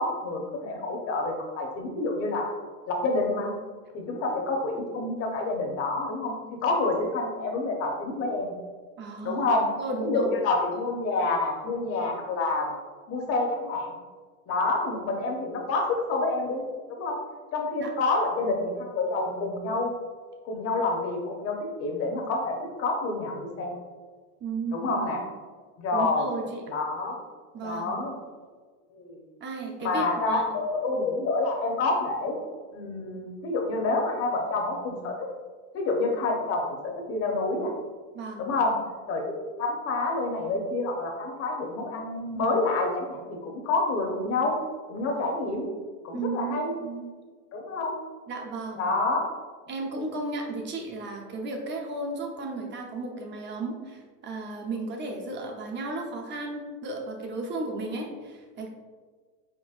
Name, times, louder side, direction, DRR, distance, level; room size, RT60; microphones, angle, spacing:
voice 1, 0.0-2.5 2.9-3.5 3.9-6.4 6.6-8.5 9.2-9.7 10.0-12.7 13.1-14.0 14.5-16.6 16.9-17.2 17.5-19.9 20.4-23.7 24.7-25.2 25.8-26.3 26.7-27.2 27.6-28.1 28.9-29.2 29.8-32.4 32.7-35.1 35.7-37.7 38.4-38.8 39.1-44.6 44.9-45.7 46.0-46.7 47.5-47.9 48.8-49.3, left 3 dB, 35° left, 1 dB, 0.8 m, -28 dB
voice 2, 9.0-9.5 9.8-10.3 17.8-17.9 24.4-25.3 25.9-26.6 27.5-28.0 29.4-30.4 38.1-38.5 46.1-47.1 48.3-48.9 49.7-58.7, right 3 dB, 25° right, 1 dB, 0.7 m, -34 dB
4.4 x 4.1 x 2.4 m, 1.5 s
supercardioid pair, 125°, 43 cm